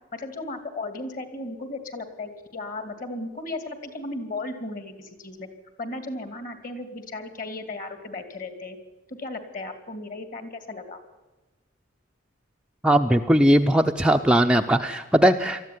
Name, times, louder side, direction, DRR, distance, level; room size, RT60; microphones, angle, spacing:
voice 1, 0.1-5.5 5.8-8.8 9.1-11.0, left 2 dB, 40° left, 9 dB, 2.6 m, -35 dB
voice 2, 12.8-15.6, right 1 dB, 5° right, 4 dB, 0.5 m, -19 dB
20.0 x 14.0 x 9.6 m, 1.2 s
head